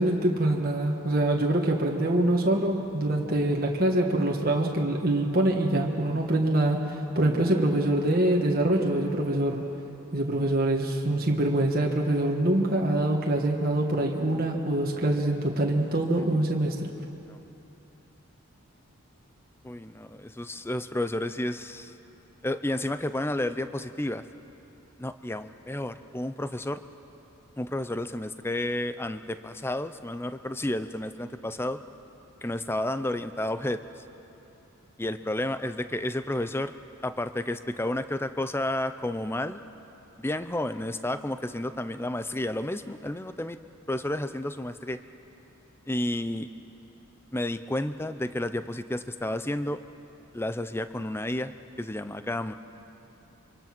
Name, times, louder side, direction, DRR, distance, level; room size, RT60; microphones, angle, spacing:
voice 1, 0.0-9.6 10.1-16.9, right 1 dB, 40° right, 0 dB, 1.6 m, -25 dB
voice 2, 17.0-17.4 19.6-21.9 22.4-24.2 25.0-26.8 27.6-31.8 32.4-34.0 35.0-36.7 37.0-39.6 40.2-43.6 43.9-45.0 45.9-46.5 47.3-49.8 50.3-52.5, left 1 dB, 10° left, 11 dB, 0.5 m, -31 dB
26.0 x 24.5 x 6.1 m, 3.0 s
head